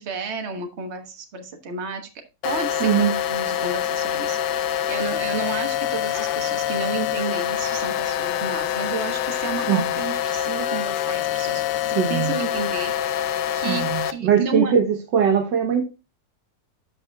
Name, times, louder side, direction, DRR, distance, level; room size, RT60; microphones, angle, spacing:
voice 1, 0.0-2.0 2.4-12.9 13.5-14.7, right 4 dB, 40° right, 1.4 m, -31 dB
sound 1, 2.4-14.1, left 11 dB, 80° left, 1.2 m, -25 dB
voice 2, 2.8-3.1 9.7-9.9 11.9-12.3 13.6-15.8, right 8 dB, 75° right, 1.7 m, -21 dB
12.0 x 5.7 x 2.3 m
omnidirectional pair, 1.9 m